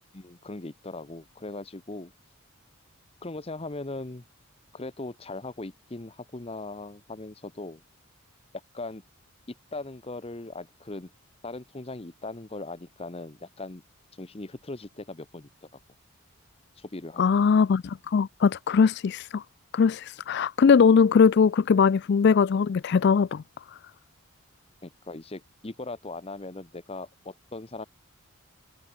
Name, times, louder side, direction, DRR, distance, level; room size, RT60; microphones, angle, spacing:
voice 1, 0.1-2.1 3.2-4.2 4.7-7.8 8.7-9.0 9.5-11.1 11.4-13.8 14.2-15.5 16.8-17.2 24.8-27.9, left 2 dB, 25° left, 0.8 m, -39 dB
voice 2, 17.2-19.4 19.7-23.4, left 6 dB, 50° left, 0.3 m, -21 dB
head